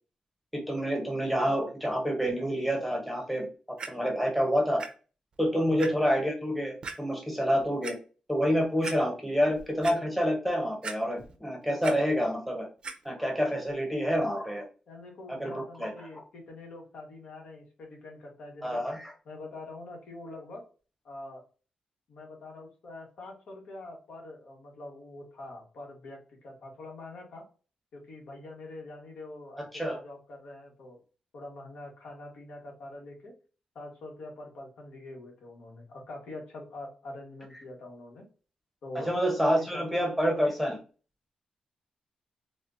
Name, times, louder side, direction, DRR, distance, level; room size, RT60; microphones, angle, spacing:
voice 1, 0.5-3.5 3.9-4.8 5.4-8.0 8.3-12.7 13.0-14.7 15.3-15.9 18.6-19.1 29.6-30.0 38.9-40.8, equal, ahead, 1 dB, 0.8 m, -28 dB
Clock, 3.8-3.9 4.8-4.9 5.3-5.4 5.8-5.9 6.8-7.0 7.6-7.9 8.5-8.6 8.8-9.0 9.4-10.0 10.8-11.3 11.6-11.9 12.8-12.9 13.7-13.8, right 4 dB, 50° right, 0.5 m, -38 dB
voice 2, 5.5-5.9 14.9-18.8 19.2-20.6 21.0-21.4 22.1-27.4 27.9-31.0 31.3-33.3 33.7-38.2 38.8-39.1 39.4-39.5 39.7-39.8, left 2 dB, 80° left, 0 dB, 1.2 m, -45 dB
4.2 x 2.1 x 2.5 m, 0.36 s
wide cardioid pair, 115°, 2 cm